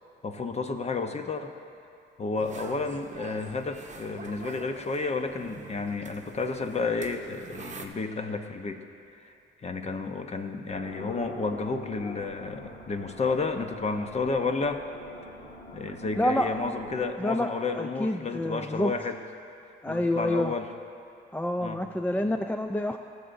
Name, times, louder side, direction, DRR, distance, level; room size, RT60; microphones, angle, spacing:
voice 1, 0.2-1.5 2.2-8.8 9.2-9.3 9.6-14.8 15.7-19.2 19.9-20.7 21.6-21.8 22.2-22.3, left 4 dB, 35° left, 6 dB, 0.8 m, -31 dB
sound 1, 2.4-7.9, right 5 dB, 40° right, 0.9 m, -45 dB
sound 2, 10.7-17.1, left 1 dB, 55° left, 1.7 m, -44 dB
voice 2, 16.2-16.5 17.2-18.9 19.8-20.5 21.3-23.0, left 1 dB, 10° left, 6 dB, 0.3 m, -28 dB
19.0 x 6.9 x 2.6 m, 2.6 s
cardioid pair, 90°, 20 cm